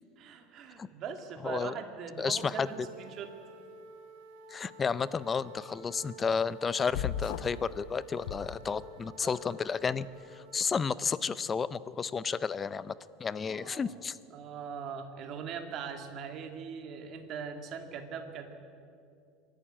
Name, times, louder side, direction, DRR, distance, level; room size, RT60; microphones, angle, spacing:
voice 1, 0.2-3.3 9.2-9.3 13.3-13.9 14.3-18.5, right 6 dB, 40° right, 6 dB, 2.0 m, -41 dB
voice 2, 1.4-1.7 2.2-2.7 4.5-10.1 10.3-12.9 13.2-14.2, left 5 dB, 20° left, 18 dB, 0.4 m, -32 dB
sound 1, 2.2-10.7, right 3 dB, 80° right, 3.5 m, -51 dB
sound 2, 6.9-7.7 8.2-9.1, left 9 dB, 75° left, 0.8 m, -36 dB
25.5 x 11.5 x 8.9 m, 2.5 s
supercardioid pair, 155°, 0 cm